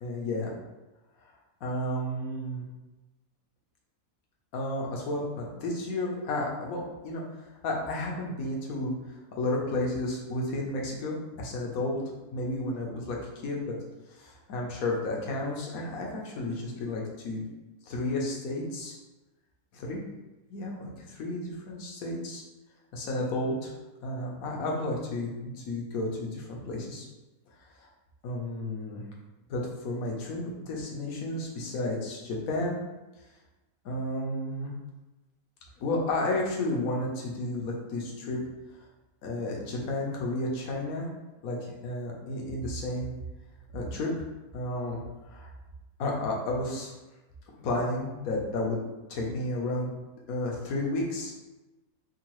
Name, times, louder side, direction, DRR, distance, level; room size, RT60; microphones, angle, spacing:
voice 1, 0.0-0.6 1.6-2.7 4.5-7.2 7.6-12.0 12.3-13.8 14.1-17.4 17.9-19.0 19.7-20.0 20.5-22.4 22.9-23.7 24.0-27.0 27.8-27.9 28.2-29.0 29.5-32.9 33.8-34.7 35.8-38.4 39.2-41.1 41.4-43.1 43.7-44.3 44.5-45.0 45.2-45.5 46.0-46.9 47.6-48.8 49.1-49.9 50.3-51.3, left 1 dB, 70° left, -1 dB, 1.1 m, -32 dB
3.6 x 2.3 x 2.9 m, 1.1 s
omnidirectional pair, 1.6 m